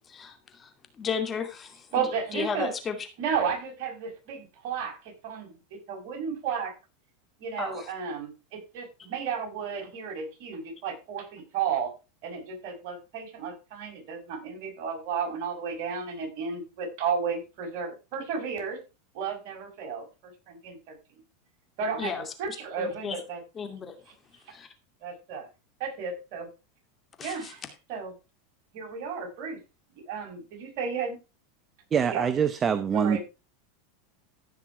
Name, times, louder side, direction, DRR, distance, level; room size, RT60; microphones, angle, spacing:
voice 1, 0.1-0.7 1.0-1.9 2.3-2.9 7.6-7.9 22.0-23.2 23.6-24.0 24.5-24.7 27.2-27.5, left 6 dB, 25° left, 7 dB, 2.4 m, -34 dB
voice 2, 1.9-2.7 3.2-6.7 7.4-11.9 12.2-18.8 19.1-21.0 21.8-23.4 25.0-25.5 25.8-26.5 27.2-27.6 27.9-28.1 28.7-29.6 30.1-31.2 32.1-32.3 32.9-33.2, right 6 dB, 60° right, 1 dB, 5.9 m, -33 dB
voice 3, 31.9-33.2, right 7 dB, 25° right, 13 dB, 0.9 m, -24 dB
15.0 x 6.0 x 4.6 m, 0.29 s
hypercardioid pair, 115°, 0 cm